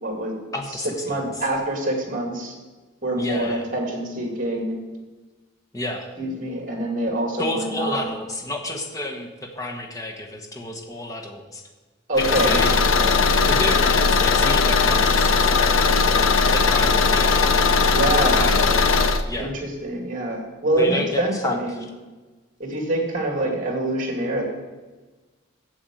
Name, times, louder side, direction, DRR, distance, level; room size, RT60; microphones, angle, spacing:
voice 1, 0.0-0.5 1.1-2.5 3.0-4.8 6.2-8.0 12.1-12.5 17.9-18.4 19.4-21.8 22.6-24.4, right 1 dB, 40° right, 1 dB, 2.4 m, -25 dB
voice 2, 0.5-1.2 3.2-3.7 5.7-6.1 7.4-11.6 12.2-12.8 13.4-15.5 16.5-17.6 18.3-18.9 19.2-19.5 20.8-21.6, left 1 dB, 15° left, 2 dB, 1.1 m, -30 dB
Car / Engine, 12.2-19.2, left 4 dB, 85° left, 0.7 m, -18 dB
8.7 x 7.8 x 7.6 m, 1.3 s
head